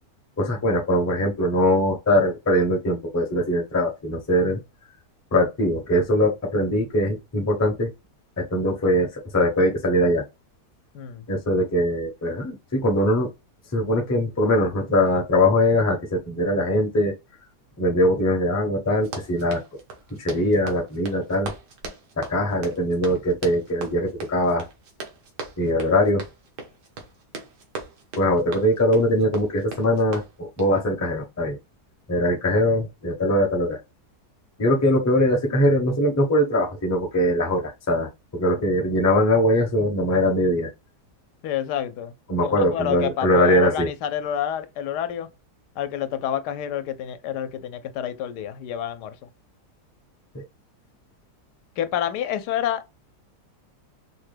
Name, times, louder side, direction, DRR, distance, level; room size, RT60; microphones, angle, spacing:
voice 1, 0.4-4.6 5.3-7.9 8.4-10.2 11.3-13.3 13.7-17.1 17.8-19.6 20.2-21.5 22.2-24.7 25.6-26.2 28.2-31.6 32.1-33.8 34.6-40.7 42.3-43.9 50.3-50.4, left 1 dB, 20° left, 0.4 m, -21 dB
voice 2, 10.9-11.3 41.4-42.1 42.4-45.3 45.8-49.2 51.8-52.8, left 10 dB, 85° left, 1.2 m, -28 dB
Run, 19.0-30.8, right 4 dB, 85° right, 1.6 m, -39 dB
4.6 x 2.1 x 3.2 m
omnidirectional pair, 1.8 m